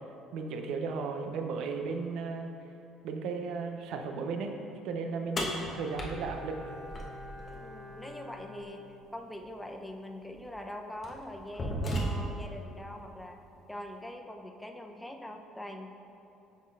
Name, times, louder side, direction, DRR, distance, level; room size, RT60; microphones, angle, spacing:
voice 1, 0.3-2.5 3.0-4.5 4.8-6.5, right 4 dB, 60° right, 4 dB, 0.5 m, -35 dB
sound 1, 5.4-7.5 9.4-9.5 10.3-10.5 11.0-12.5, equal, 40° left, 1.0 m, -34 dB
Bowed string instrument, 5.7-9.4 9.7-9.8, left 1 dB, 45° right, 1.2 m, -48 dB
voice 2, 7.4-15.9, left 1 dB, 10° left, 4 dB, 0.6 m, -43 dB
8.6 x 5.4 x 2.4 m, 3.0 s
hypercardioid pair, 55°, 0 cm